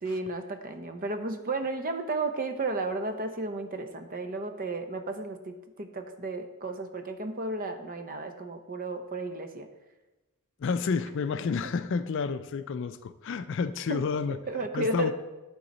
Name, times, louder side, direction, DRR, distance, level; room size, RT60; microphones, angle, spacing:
voice 1, 0.0-9.7 13.9-14.0 14.3-15.1, right 2 dB, 40° right, 7 dB, 0.6 m, -33 dB
voice 2, 10.6-14.4 14.7-15.1, left 5 dB, 55° left, 12 dB, 0.4 m, -30 dB
11.5 x 3.9 x 4.1 m, 1.1 s
head